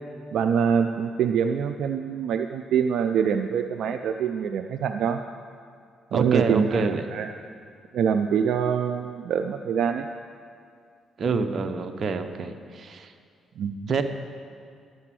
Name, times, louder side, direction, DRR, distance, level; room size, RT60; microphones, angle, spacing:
voice 1, 0.3-5.2 6.1-7.3 7.9-10.1 13.6-13.9, right 7 dB, 75° right, 7 dB, 0.4 m, -25 dB
voice 2, 6.1-7.0 11.2-13.1 13.9-14.0, right 4 dB, 50° right, 7 dB, 0.8 m, -26 dB
11.0 x 7.0 x 7.5 m, 2.3 s
cardioid pair, 90°, 0 cm